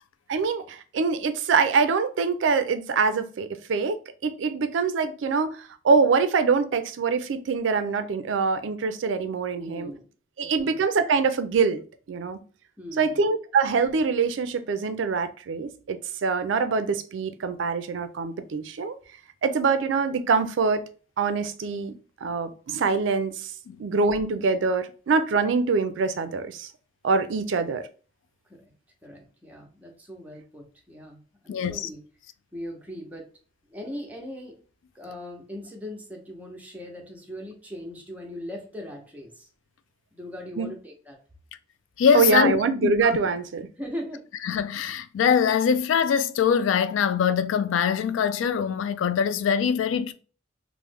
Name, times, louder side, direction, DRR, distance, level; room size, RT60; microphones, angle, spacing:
voice 1, 0.3-4.0 4.2-9.9 10.4-11.8 12.1-12.4 13.0-19.0 19.4-20.8 21.2-21.9 22.2-23.5 23.8-26.7 27.0-27.9 40.6-40.7 42.1-43.7, right 4 dB, 75° right, 0.4 m, -24 dB
voice 2, 9.6-10.1 10.4-10.8 12.8-13.2 28.5-28.7 29.0-32.0 32.5-33.3 33.7-34.6 34.9-39.5 40.1-41.2 43.8-44.2, equal, 10° right, 0.7 m, -39 dB
voice 3, 31.5-31.9 42.0-42.6 42.8-43.1 44.4-50.1, left 7 dB, 85° left, 0.3 m, -23 dB
3.0 x 2.0 x 3.4 m
head